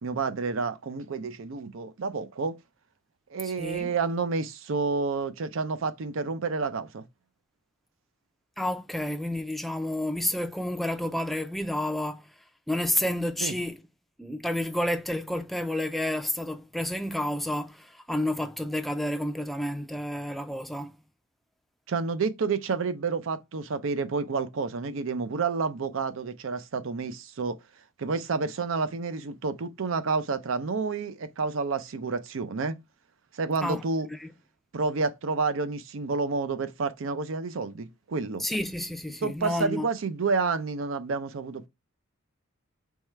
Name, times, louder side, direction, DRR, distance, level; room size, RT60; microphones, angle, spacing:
voice 1, 0.0-2.6 3.3-7.0 13.4-13.5 21.9-27.6 28.0-32.7 33.3-34.1 34.7-38.4 39.2-41.7, right 4 dB, 75° right, 0.5 m, -29 dB
voice 2, 3.4-3.9 8.6-12.3 12.7-13.8 14.2-21.0 33.6-33.9 34.2-34.3 38.4-39.9, left 1 dB, ahead, 0.4 m, -30 dB
3.6 x 3.2 x 4.4 m
head